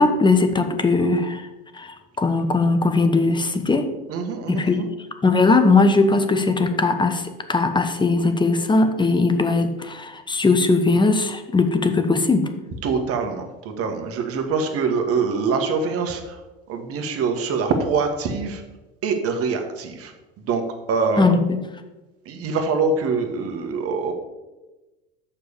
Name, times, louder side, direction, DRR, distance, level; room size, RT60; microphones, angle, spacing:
voice 1, 0.0-1.4 1.7-3.9 4.5-4.8 5.2-7.2 7.5-12.5 21.2-21.6, left 3 dB, 15° left, 8 dB, 1.0 m, -19 dB
voice 2, 4.1-4.9 12.8-16.4 16.7-18.6 19.0-20.6 20.9-21.3 22.2-24.1, right 4 dB, 50° right, 5 dB, 1.6 m, -24 dB
6.8 x 5.8 x 6.8 m, 1.1 s
hypercardioid pair, 80°, 30 cm